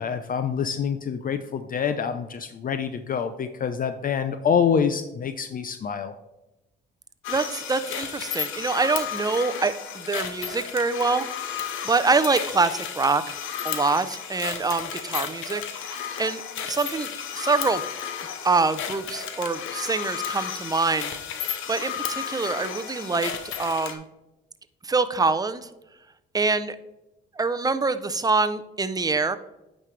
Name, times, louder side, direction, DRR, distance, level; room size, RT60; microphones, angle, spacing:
voice 1, 0.0-6.1, left 7 dB, 45° left, 10 dB, 0.5 m, -26 dB
sound 1, 7.2-23.9, left 8 dB, 85° left, 0.9 m, -33 dB
voice 2, 7.3-11.5 11.8-13.4 13.6-17.8 18.4-21.1 21.7-24.0 24.8-25.7 26.3-26.8 27.4-29.4, right 4 dB, 20° right, 12 dB, 0.5 m, -25 dB
8.8 x 5.3 x 3.2 m, 0.96 s
cardioid pair, 90°, 20 cm